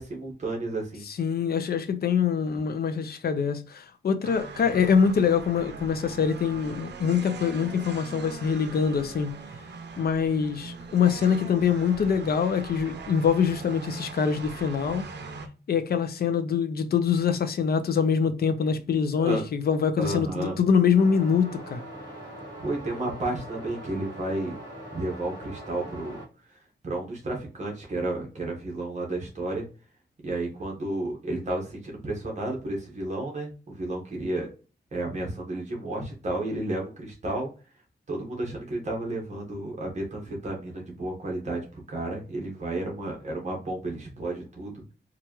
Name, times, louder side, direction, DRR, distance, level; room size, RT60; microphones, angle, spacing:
voice 1, 0.0-1.0 19.2-19.5 20.0-20.6 22.6-24.6 24.9-26.2 26.5-26.6 26.8-29.7 30.2-34.5 34.9-37.5 38.1-44.8, right 2 dB, 40° right, 1.3 m, -32 dB
voice 2, 1.1-9.3 10.0-15.1 15.7-21.8, left 6 dB, 65° left, 0.5 m, -24 dB
sound 1, 4.2-15.5, right 4 dB, 90° right, 0.6 m, -40 dB
sound 2, 20.9-26.2, right 1 dB, 25° right, 1.9 m, -42 dB
4.5 x 2.5 x 2.9 m
wide cardioid pair, 165°, 17 cm